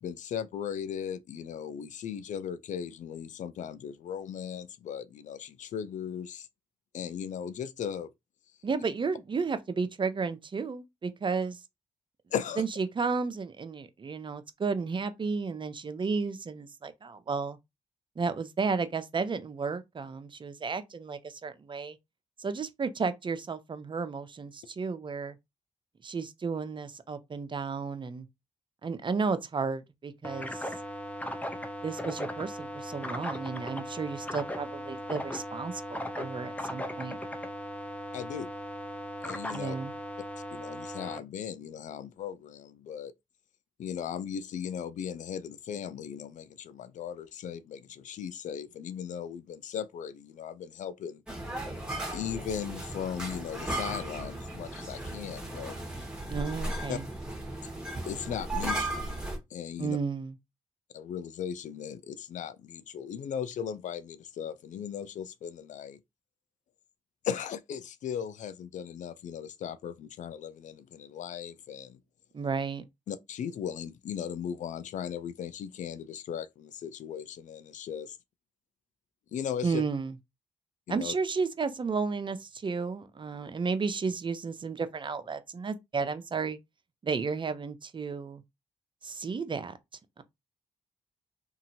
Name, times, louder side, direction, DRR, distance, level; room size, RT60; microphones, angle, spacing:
voice 1, 0.0-6.5 6.9-8.1 12.3-12.7 38.1-38.5 39.2-39.8 40.5-43.1 43.8-51.2 52.1-55.8 56.9-57.0 58.1-59.1 59.5-60.0 60.9-66.0 67.2-72.0 73.1-78.2 79.3-79.8 80.9-81.1, left 8 dB, 65° left, 0.4 m, -37 dB
voice 2, 8.6-11.6 12.6-17.6 18.2-22.0 22.4-25.4 26.0-28.3 28.8-30.7 31.8-37.2 39.5-39.9 56.3-57.1 59.8-60.3 72.3-72.8 79.6-80.1 80.9-86.6 87.0-88.4 89.0-89.7 90.2-90.3, right 5 dB, 35° right, 0.6 m, -33 dB
sound 1, 30.2-41.2, left 1 dB, 10° left, 0.6 m, -38 dB
sound 2, 51.3-59.4, right 1 dB, 5° right, 1.3 m, -36 dB
2.8 x 2.5 x 2.7 m
supercardioid pair, 50°, 14 cm